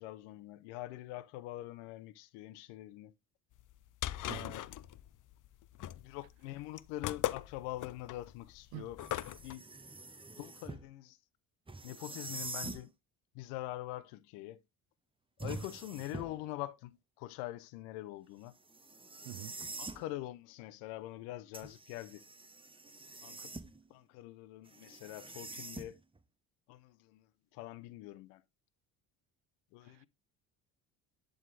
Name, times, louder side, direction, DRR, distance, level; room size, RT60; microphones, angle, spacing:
voice 1, 0.0-3.1 4.2-4.6 6.0-9.0 9.4-9.6 10.4-11.2 11.8-12.9 13.3-14.6 15.4-18.5 19.8-22.2 23.2-23.5 23.9-26.0 26.7-27.3 27.5-28.4 29.7-30.1, left 16 dB, 85° left, 0.9 m, -44 dB
sound 1, 3.6-9.5, left 14 dB, 50° left, 0.6 m, -39 dB
sound 2, 9.0-10.9 11.7-12.9 15.4-16.5 18.7-20.1 21.5-23.9 24.7-26.2, right 3 dB, 15° right, 1.0 m, -46 dB
voice 2, 19.2-19.6 29.8-30.1, right 20 dB, 75° right, 0.5 m, -46 dB
11.0 x 3.9 x 3.3 m
supercardioid pair, 75°, 41 cm